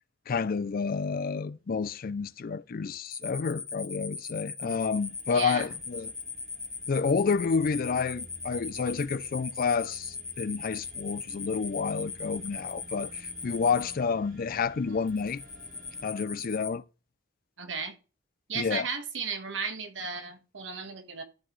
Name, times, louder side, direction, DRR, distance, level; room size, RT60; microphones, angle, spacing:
voice 1, 0.3-6.1 6.9-15.4 16.0-16.8 18.5-18.9, left 5 dB, 50° left, 0.4 m, -29 dB
sound 1, 3.1-13.9 15.1-16.7, left 5 dB, 20° left, 1.1 m, -38 dB
sound 2, 4.9-16.1, right 1 dB, 45° right, 1.8 m, -53 dB
voice 2, 5.3-5.7 14.9-15.0 17.6-17.9 18.5-21.2, right 5 dB, 70° right, 1.4 m, -35 dB
12.5 x 5.9 x 3.2 m
head